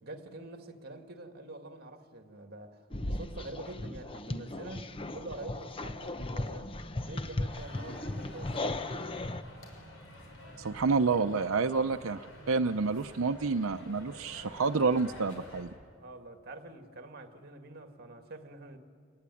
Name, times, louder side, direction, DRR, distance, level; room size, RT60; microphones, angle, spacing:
voice 1, 0.0-6.7 7.0-9.0 11.7-12.0 16.0-18.8, right 2 dB, 50° right, 6 dB, 2.2 m, -46 dB
sound 1, 2.9-9.4, left 2 dB, 25° left, 0.8 m, -37 dB
sound 2, 7.5-15.7, equal, 65° left, 6.5 m, -50 dB
voice 2, 10.6-15.7, right 4 dB, 85° right, 8 dB, 0.6 m, -29 dB
28.5 x 20.5 x 9.9 m, 2.2 s
head